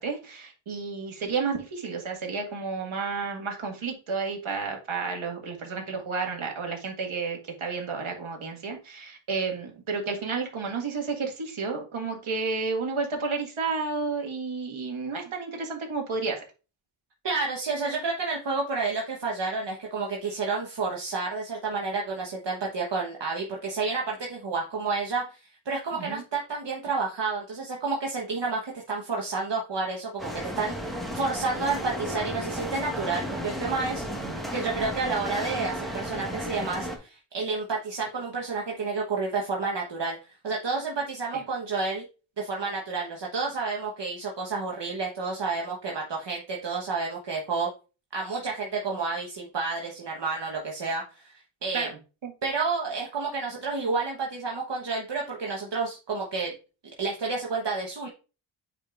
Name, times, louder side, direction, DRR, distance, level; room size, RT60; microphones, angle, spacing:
voice 1, 0.0-16.4 25.9-26.2 34.2-34.4 41.3-41.4 51.7-51.9 52.2-52.3, right 4 dB, 75° right, 2 dB, 1.8 m, -31 dB
voice 2, 17.2-34.0 34.5-42.0 42.4-47.7 48.1-51.9 52.4-56.5 57.0-58.1, right 4 dB, 55° right, -1 dB, 1.2 m, -30 dB
sound 1, 30.2-37.0, equal, ahead, 1.5 m, -33 dB
8.8 x 4.9 x 2.5 m, 0.33 s
wide cardioid pair, 120°, 49 cm